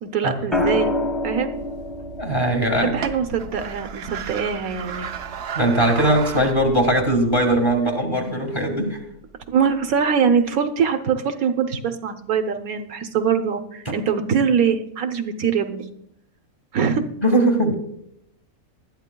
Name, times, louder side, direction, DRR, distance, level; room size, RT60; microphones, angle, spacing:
voice 1, 0.0-0.9 1.2-1.5 2.7-5.1 9.5-15.8 16.7-17.0, right 7 dB, 75° right, 6 dB, 1.2 m, -23 dB
sound 1, 0.5-4.6 6.3-6.7, left 2 dB, ahead, 1.3 m, -28 dB
sound 2, 1.5-7.8, right 7 dB, 55° right, 0.8 m, -35 dB
voice 2, 2.2-2.9 5.5-9.0 13.8-13.9 17.2-17.7, right 1 dB, 20° left, 2 dB, 1.7 m, -20 dB
19.5 x 12.5 x 2.2 m, 0.76 s
omnidirectional pair, 1.6 m